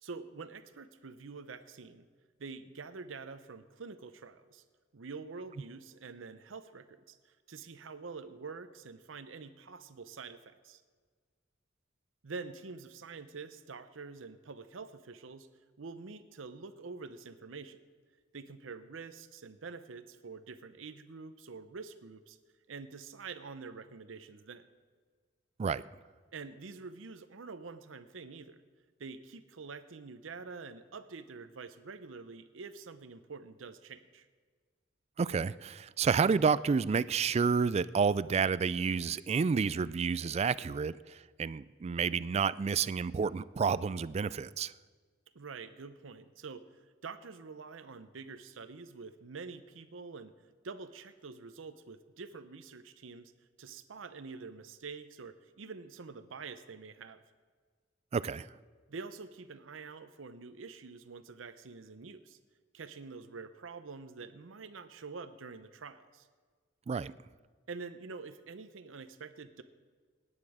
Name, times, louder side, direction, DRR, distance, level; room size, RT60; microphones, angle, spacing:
voice 1, 0.0-2.1 2.4-4.6 4.9-10.8 12.2-15.5 15.8-17.8 18.3-22.4 22.7-24.6 26.3-28.6 29.0-34.3 45.3-50.3 50.6-53.3 53.6-57.2 58.9-62.4 62.7-66.3 67.7-69.6, right 4 dB, 85° right, 0.7 m, -46 dB
voice 2, 35.2-44.7 58.1-58.5 66.9-67.1, right 5 dB, 35° right, 0.3 m, -30 dB
17.5 x 9.8 x 4.9 m
head